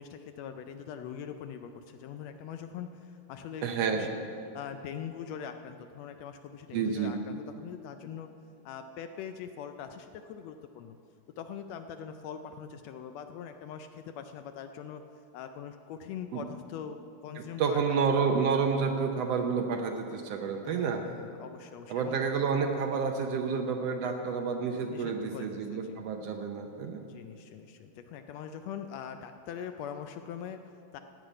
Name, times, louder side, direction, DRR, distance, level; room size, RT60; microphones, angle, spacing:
voice 1, 0.0-3.7 3.9-4.2 4.5-8.3 8.7-11.0 11.4-15.0 15.3-18.0 20.7-22.2 24.9-26.0 27.0-31.0, left 8 dB, 80° left, 7 dB, 1.6 m, -42 dB
voice 2, 3.6-4.1 6.7-7.1 16.3-16.4 17.6-21.0 21.9-27.0, right 5 dB, 70° right, 4 dB, 1.7 m, -29 dB
15.5 x 5.6 x 8.9 m, 2.6 s
omnidirectional pair, 3.3 m